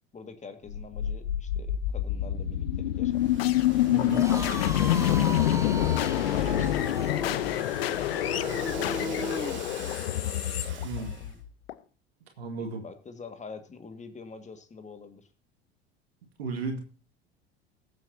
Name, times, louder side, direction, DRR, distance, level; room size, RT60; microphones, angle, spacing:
voice 1, 0.1-3.3 4.1-5.5 6.3-6.8 7.2-10.0 10.6-11.4 12.6-15.3, left 5 dB, 25° left, 8 dB, 1.9 m, -45 dB
sound 1, 0.7-11.7, left 12 dB, 75° left, 0.8 m, -27 dB
Domestic sounds home sounds, 3.1-11.4, right 6 dB, 35° right, 3.0 m, -47 dB
voice 2, 3.9-4.2 10.8-11.1 12.4-12.8 16.4-16.8, right 4 dB, 75° right, 3 dB, 2.0 m, -34 dB
sound 2, 4.1-9.6, right 2 dB, 10° right, 1.8 m, -37 dB
21.0 x 7.7 x 2.8 m, 0.38 s
figure-of-eight pair, 70°, 31 cm